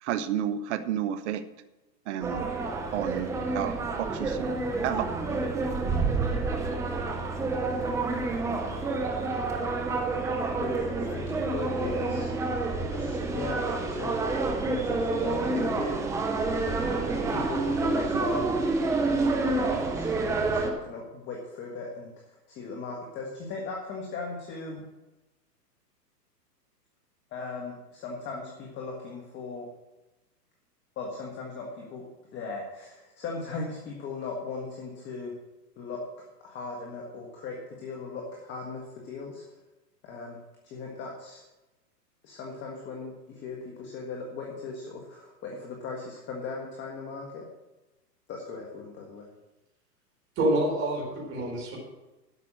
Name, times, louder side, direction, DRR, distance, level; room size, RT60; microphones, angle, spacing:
voice 1, 0.0-1.4 2.1-2.5 2.9-4.5 4.8-5.1, right 10 dB, 45° right, 12 dB, 1.0 m, -31 dB
sound 1, 2.2-20.7, right 3 dB, 5° right, 0.6 m, -28 dB
voice 2, 10.5-14.2 14.6-16.4 17.3-24.8 27.3-29.7 31.0-32.0 32.3-35.3 35.8-39.4 40.0-40.4 40.6-41.4 42.2-47.5 48.3-49.3, left 4 dB, 20° left, 0 dB, 1.6 m, -38 dB
voice 3, 50.4-51.8, right 1 dB, 25° right, -3 dB, 4.6 m, -27 dB
12.5 x 5.9 x 7.6 m, 1.0 s
hypercardioid pair, 140°, 50 cm